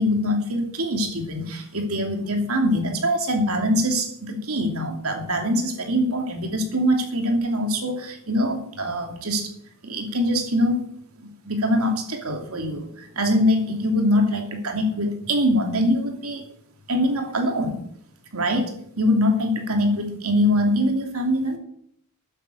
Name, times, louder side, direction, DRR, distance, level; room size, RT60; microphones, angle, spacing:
voice 1, 0.0-9.5 9.8-10.8 11.2-16.4 16.9-17.8 18.3-21.6, equal, 75° right, 4 dB, 2.9 m, -23 dB
13.5 x 9.9 x 6.5 m, 0.68 s
head